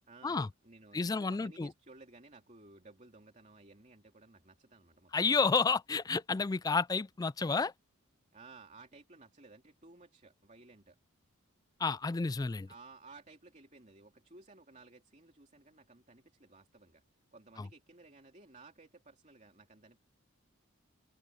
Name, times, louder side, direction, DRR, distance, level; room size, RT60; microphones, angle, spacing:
voice 1, 0.1-5.3 8.3-11.0 12.7-17.0 17.3-20.0, right 3 dB, 35° right, 3.0 m, -57 dB
voice 2, 0.9-1.7 5.1-7.7 11.8-12.7 17.6-17.7, left 4 dB, 20° left, 0.3 m, -30 dB
open air
head